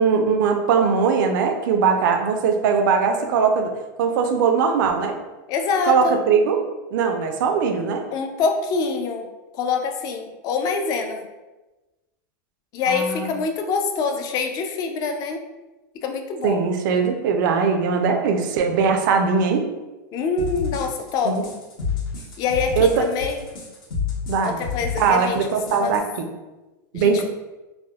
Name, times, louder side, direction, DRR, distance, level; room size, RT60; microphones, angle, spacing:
voice 1, 0.0-3.7 4.0-5.2 5.9-6.6 6.9-8.0 12.9-13.4 16.4-19.7 21.2-21.4 22.8-23.0 24.3-24.6 25.0-26.3 26.9-27.2, right 5 dB, 75° right, 5 dB, 0.4 m, -20 dB
voice 2, 5.5-6.2 8.1-9.3 9.5-11.3 12.7-15.4 16.0-16.7 20.1-21.6 22.4-23.5 24.4-25.4 25.7-25.9 26.9-27.2, left 5 dB, 35° left, 5 dB, 0.3 m, -25 dB
sound 1, 20.4-26.0, left 6 dB, 80° left, 1.2 m, -29 dB
3.4 x 2.0 x 2.3 m, 1.1 s
supercardioid pair, 140°, 11 cm